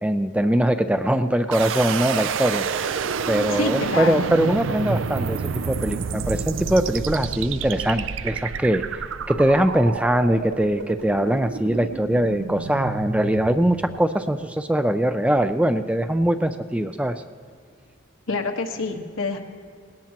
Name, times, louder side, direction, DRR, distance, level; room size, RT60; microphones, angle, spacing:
voice 1, 0.0-2.7 3.3-17.2, right 1 dB, 5° right, 9 dB, 0.4 m, -22 dB
sound 1, 1.5-14.4, right 5 dB, 65° right, 0.4 m, -29 dB
voice 2, 3.5-4.3 18.3-19.4, left 3 dB, 80° left, 3 dB, 1.3 m, -27 dB
19.5 x 18.0 x 2.9 m, 2.1 s
head